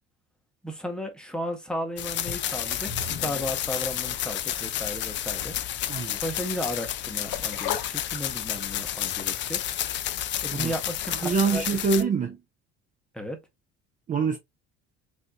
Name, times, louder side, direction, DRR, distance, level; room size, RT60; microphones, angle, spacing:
voice 1, 0.6-5.5 6.1-9.6 10.4-11.6 13.1-13.4, equal, 5° left, 0.8 m, -34 dB
sound 1, 2.0-12.0, left 12 dB, 40° left, 0.4 m, -31 dB
sound 2, 2.3-4.7 5.4-5.5 6.1-6.2, left 2 dB, 60° left, 1.0 m, -41 dB
voice 2, 5.9-6.2 10.5-10.7 11.1-12.4 14.1-14.4, right 5 dB, 25° right, 0.5 m, -25 dB
sound 3, 7.2-8.7 9.1-9.2, left 10 dB, 85° left, 0.9 m, -33 dB
4.2 x 2.6 x 2.2 m
cardioid pair, 135°, 29 cm